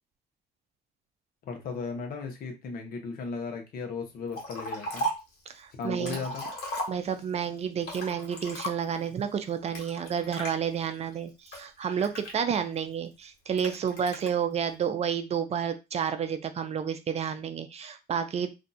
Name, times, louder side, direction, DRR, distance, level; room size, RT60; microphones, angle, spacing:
voice 1, 1.4-5.1 5.8-6.4, left 5 dB, 60° left, 3 dB, 0.9 m, -36 dB
Liquid, 4.3-5.3 5.8-7.3 7.8-9.0 9.7-10.5 11.1-12.8 13.6-14.3, right 1 dB, 75° left, 1.3 m, -36 dB
voice 2, 5.5-6.2 6.9-18.5, right 7 dB, 40° right, 9 dB, 0.5 m, -30 dB
2.6 x 2.3 x 4.0 m, 0.26 s
cardioid pair, 110°, 17 cm